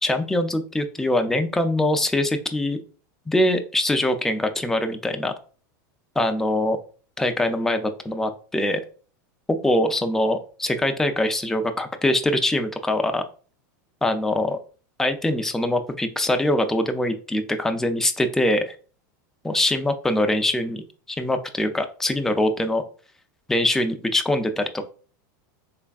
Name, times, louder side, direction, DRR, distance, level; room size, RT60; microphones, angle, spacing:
voice 1, 0.0-2.8 3.3-5.3 6.2-6.8 7.2-8.8 9.5-13.2 14.0-14.6 15.0-18.7 19.4-22.8 23.5-24.8, left 1 dB, 5° left, 7 dB, 0.3 m, -23 dB
3.4 x 3.3 x 2.3 m, 0.40 s
supercardioid pair, 135°, 10 cm